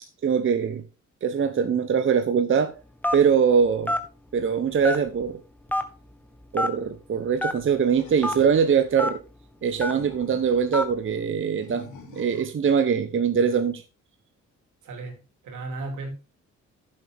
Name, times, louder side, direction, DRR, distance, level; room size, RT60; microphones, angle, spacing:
voice 1, 0.2-0.8 1.2-2.7 3.1-3.9 4.3-5.4 6.5-9.2 9.6-11.8 12.1-13.8, right 6 dB, 40° right, 1.0 m, -22 dB
Telephone, 3.0-3.3 3.9-4.0 4.8-5.2 5.7-5.8 6.5-6.7 7.4-7.5 8.2-8.3 9.0-9.1 9.8-10.0 10.7-10.9, left 1 dB, 5° left, 1.4 m, -25 dB
Animal, 7.8-9.0 9.7-10.8 11.6-12.6, left 4 dB, 75° left, 3.0 m, -46 dB
voice 2, 14.8-15.2 15.4-16.1, right 2 dB, 75° right, 3.3 m, -34 dB
10.5 x 7.6 x 3.6 m
cardioid pair, 90°, 30 cm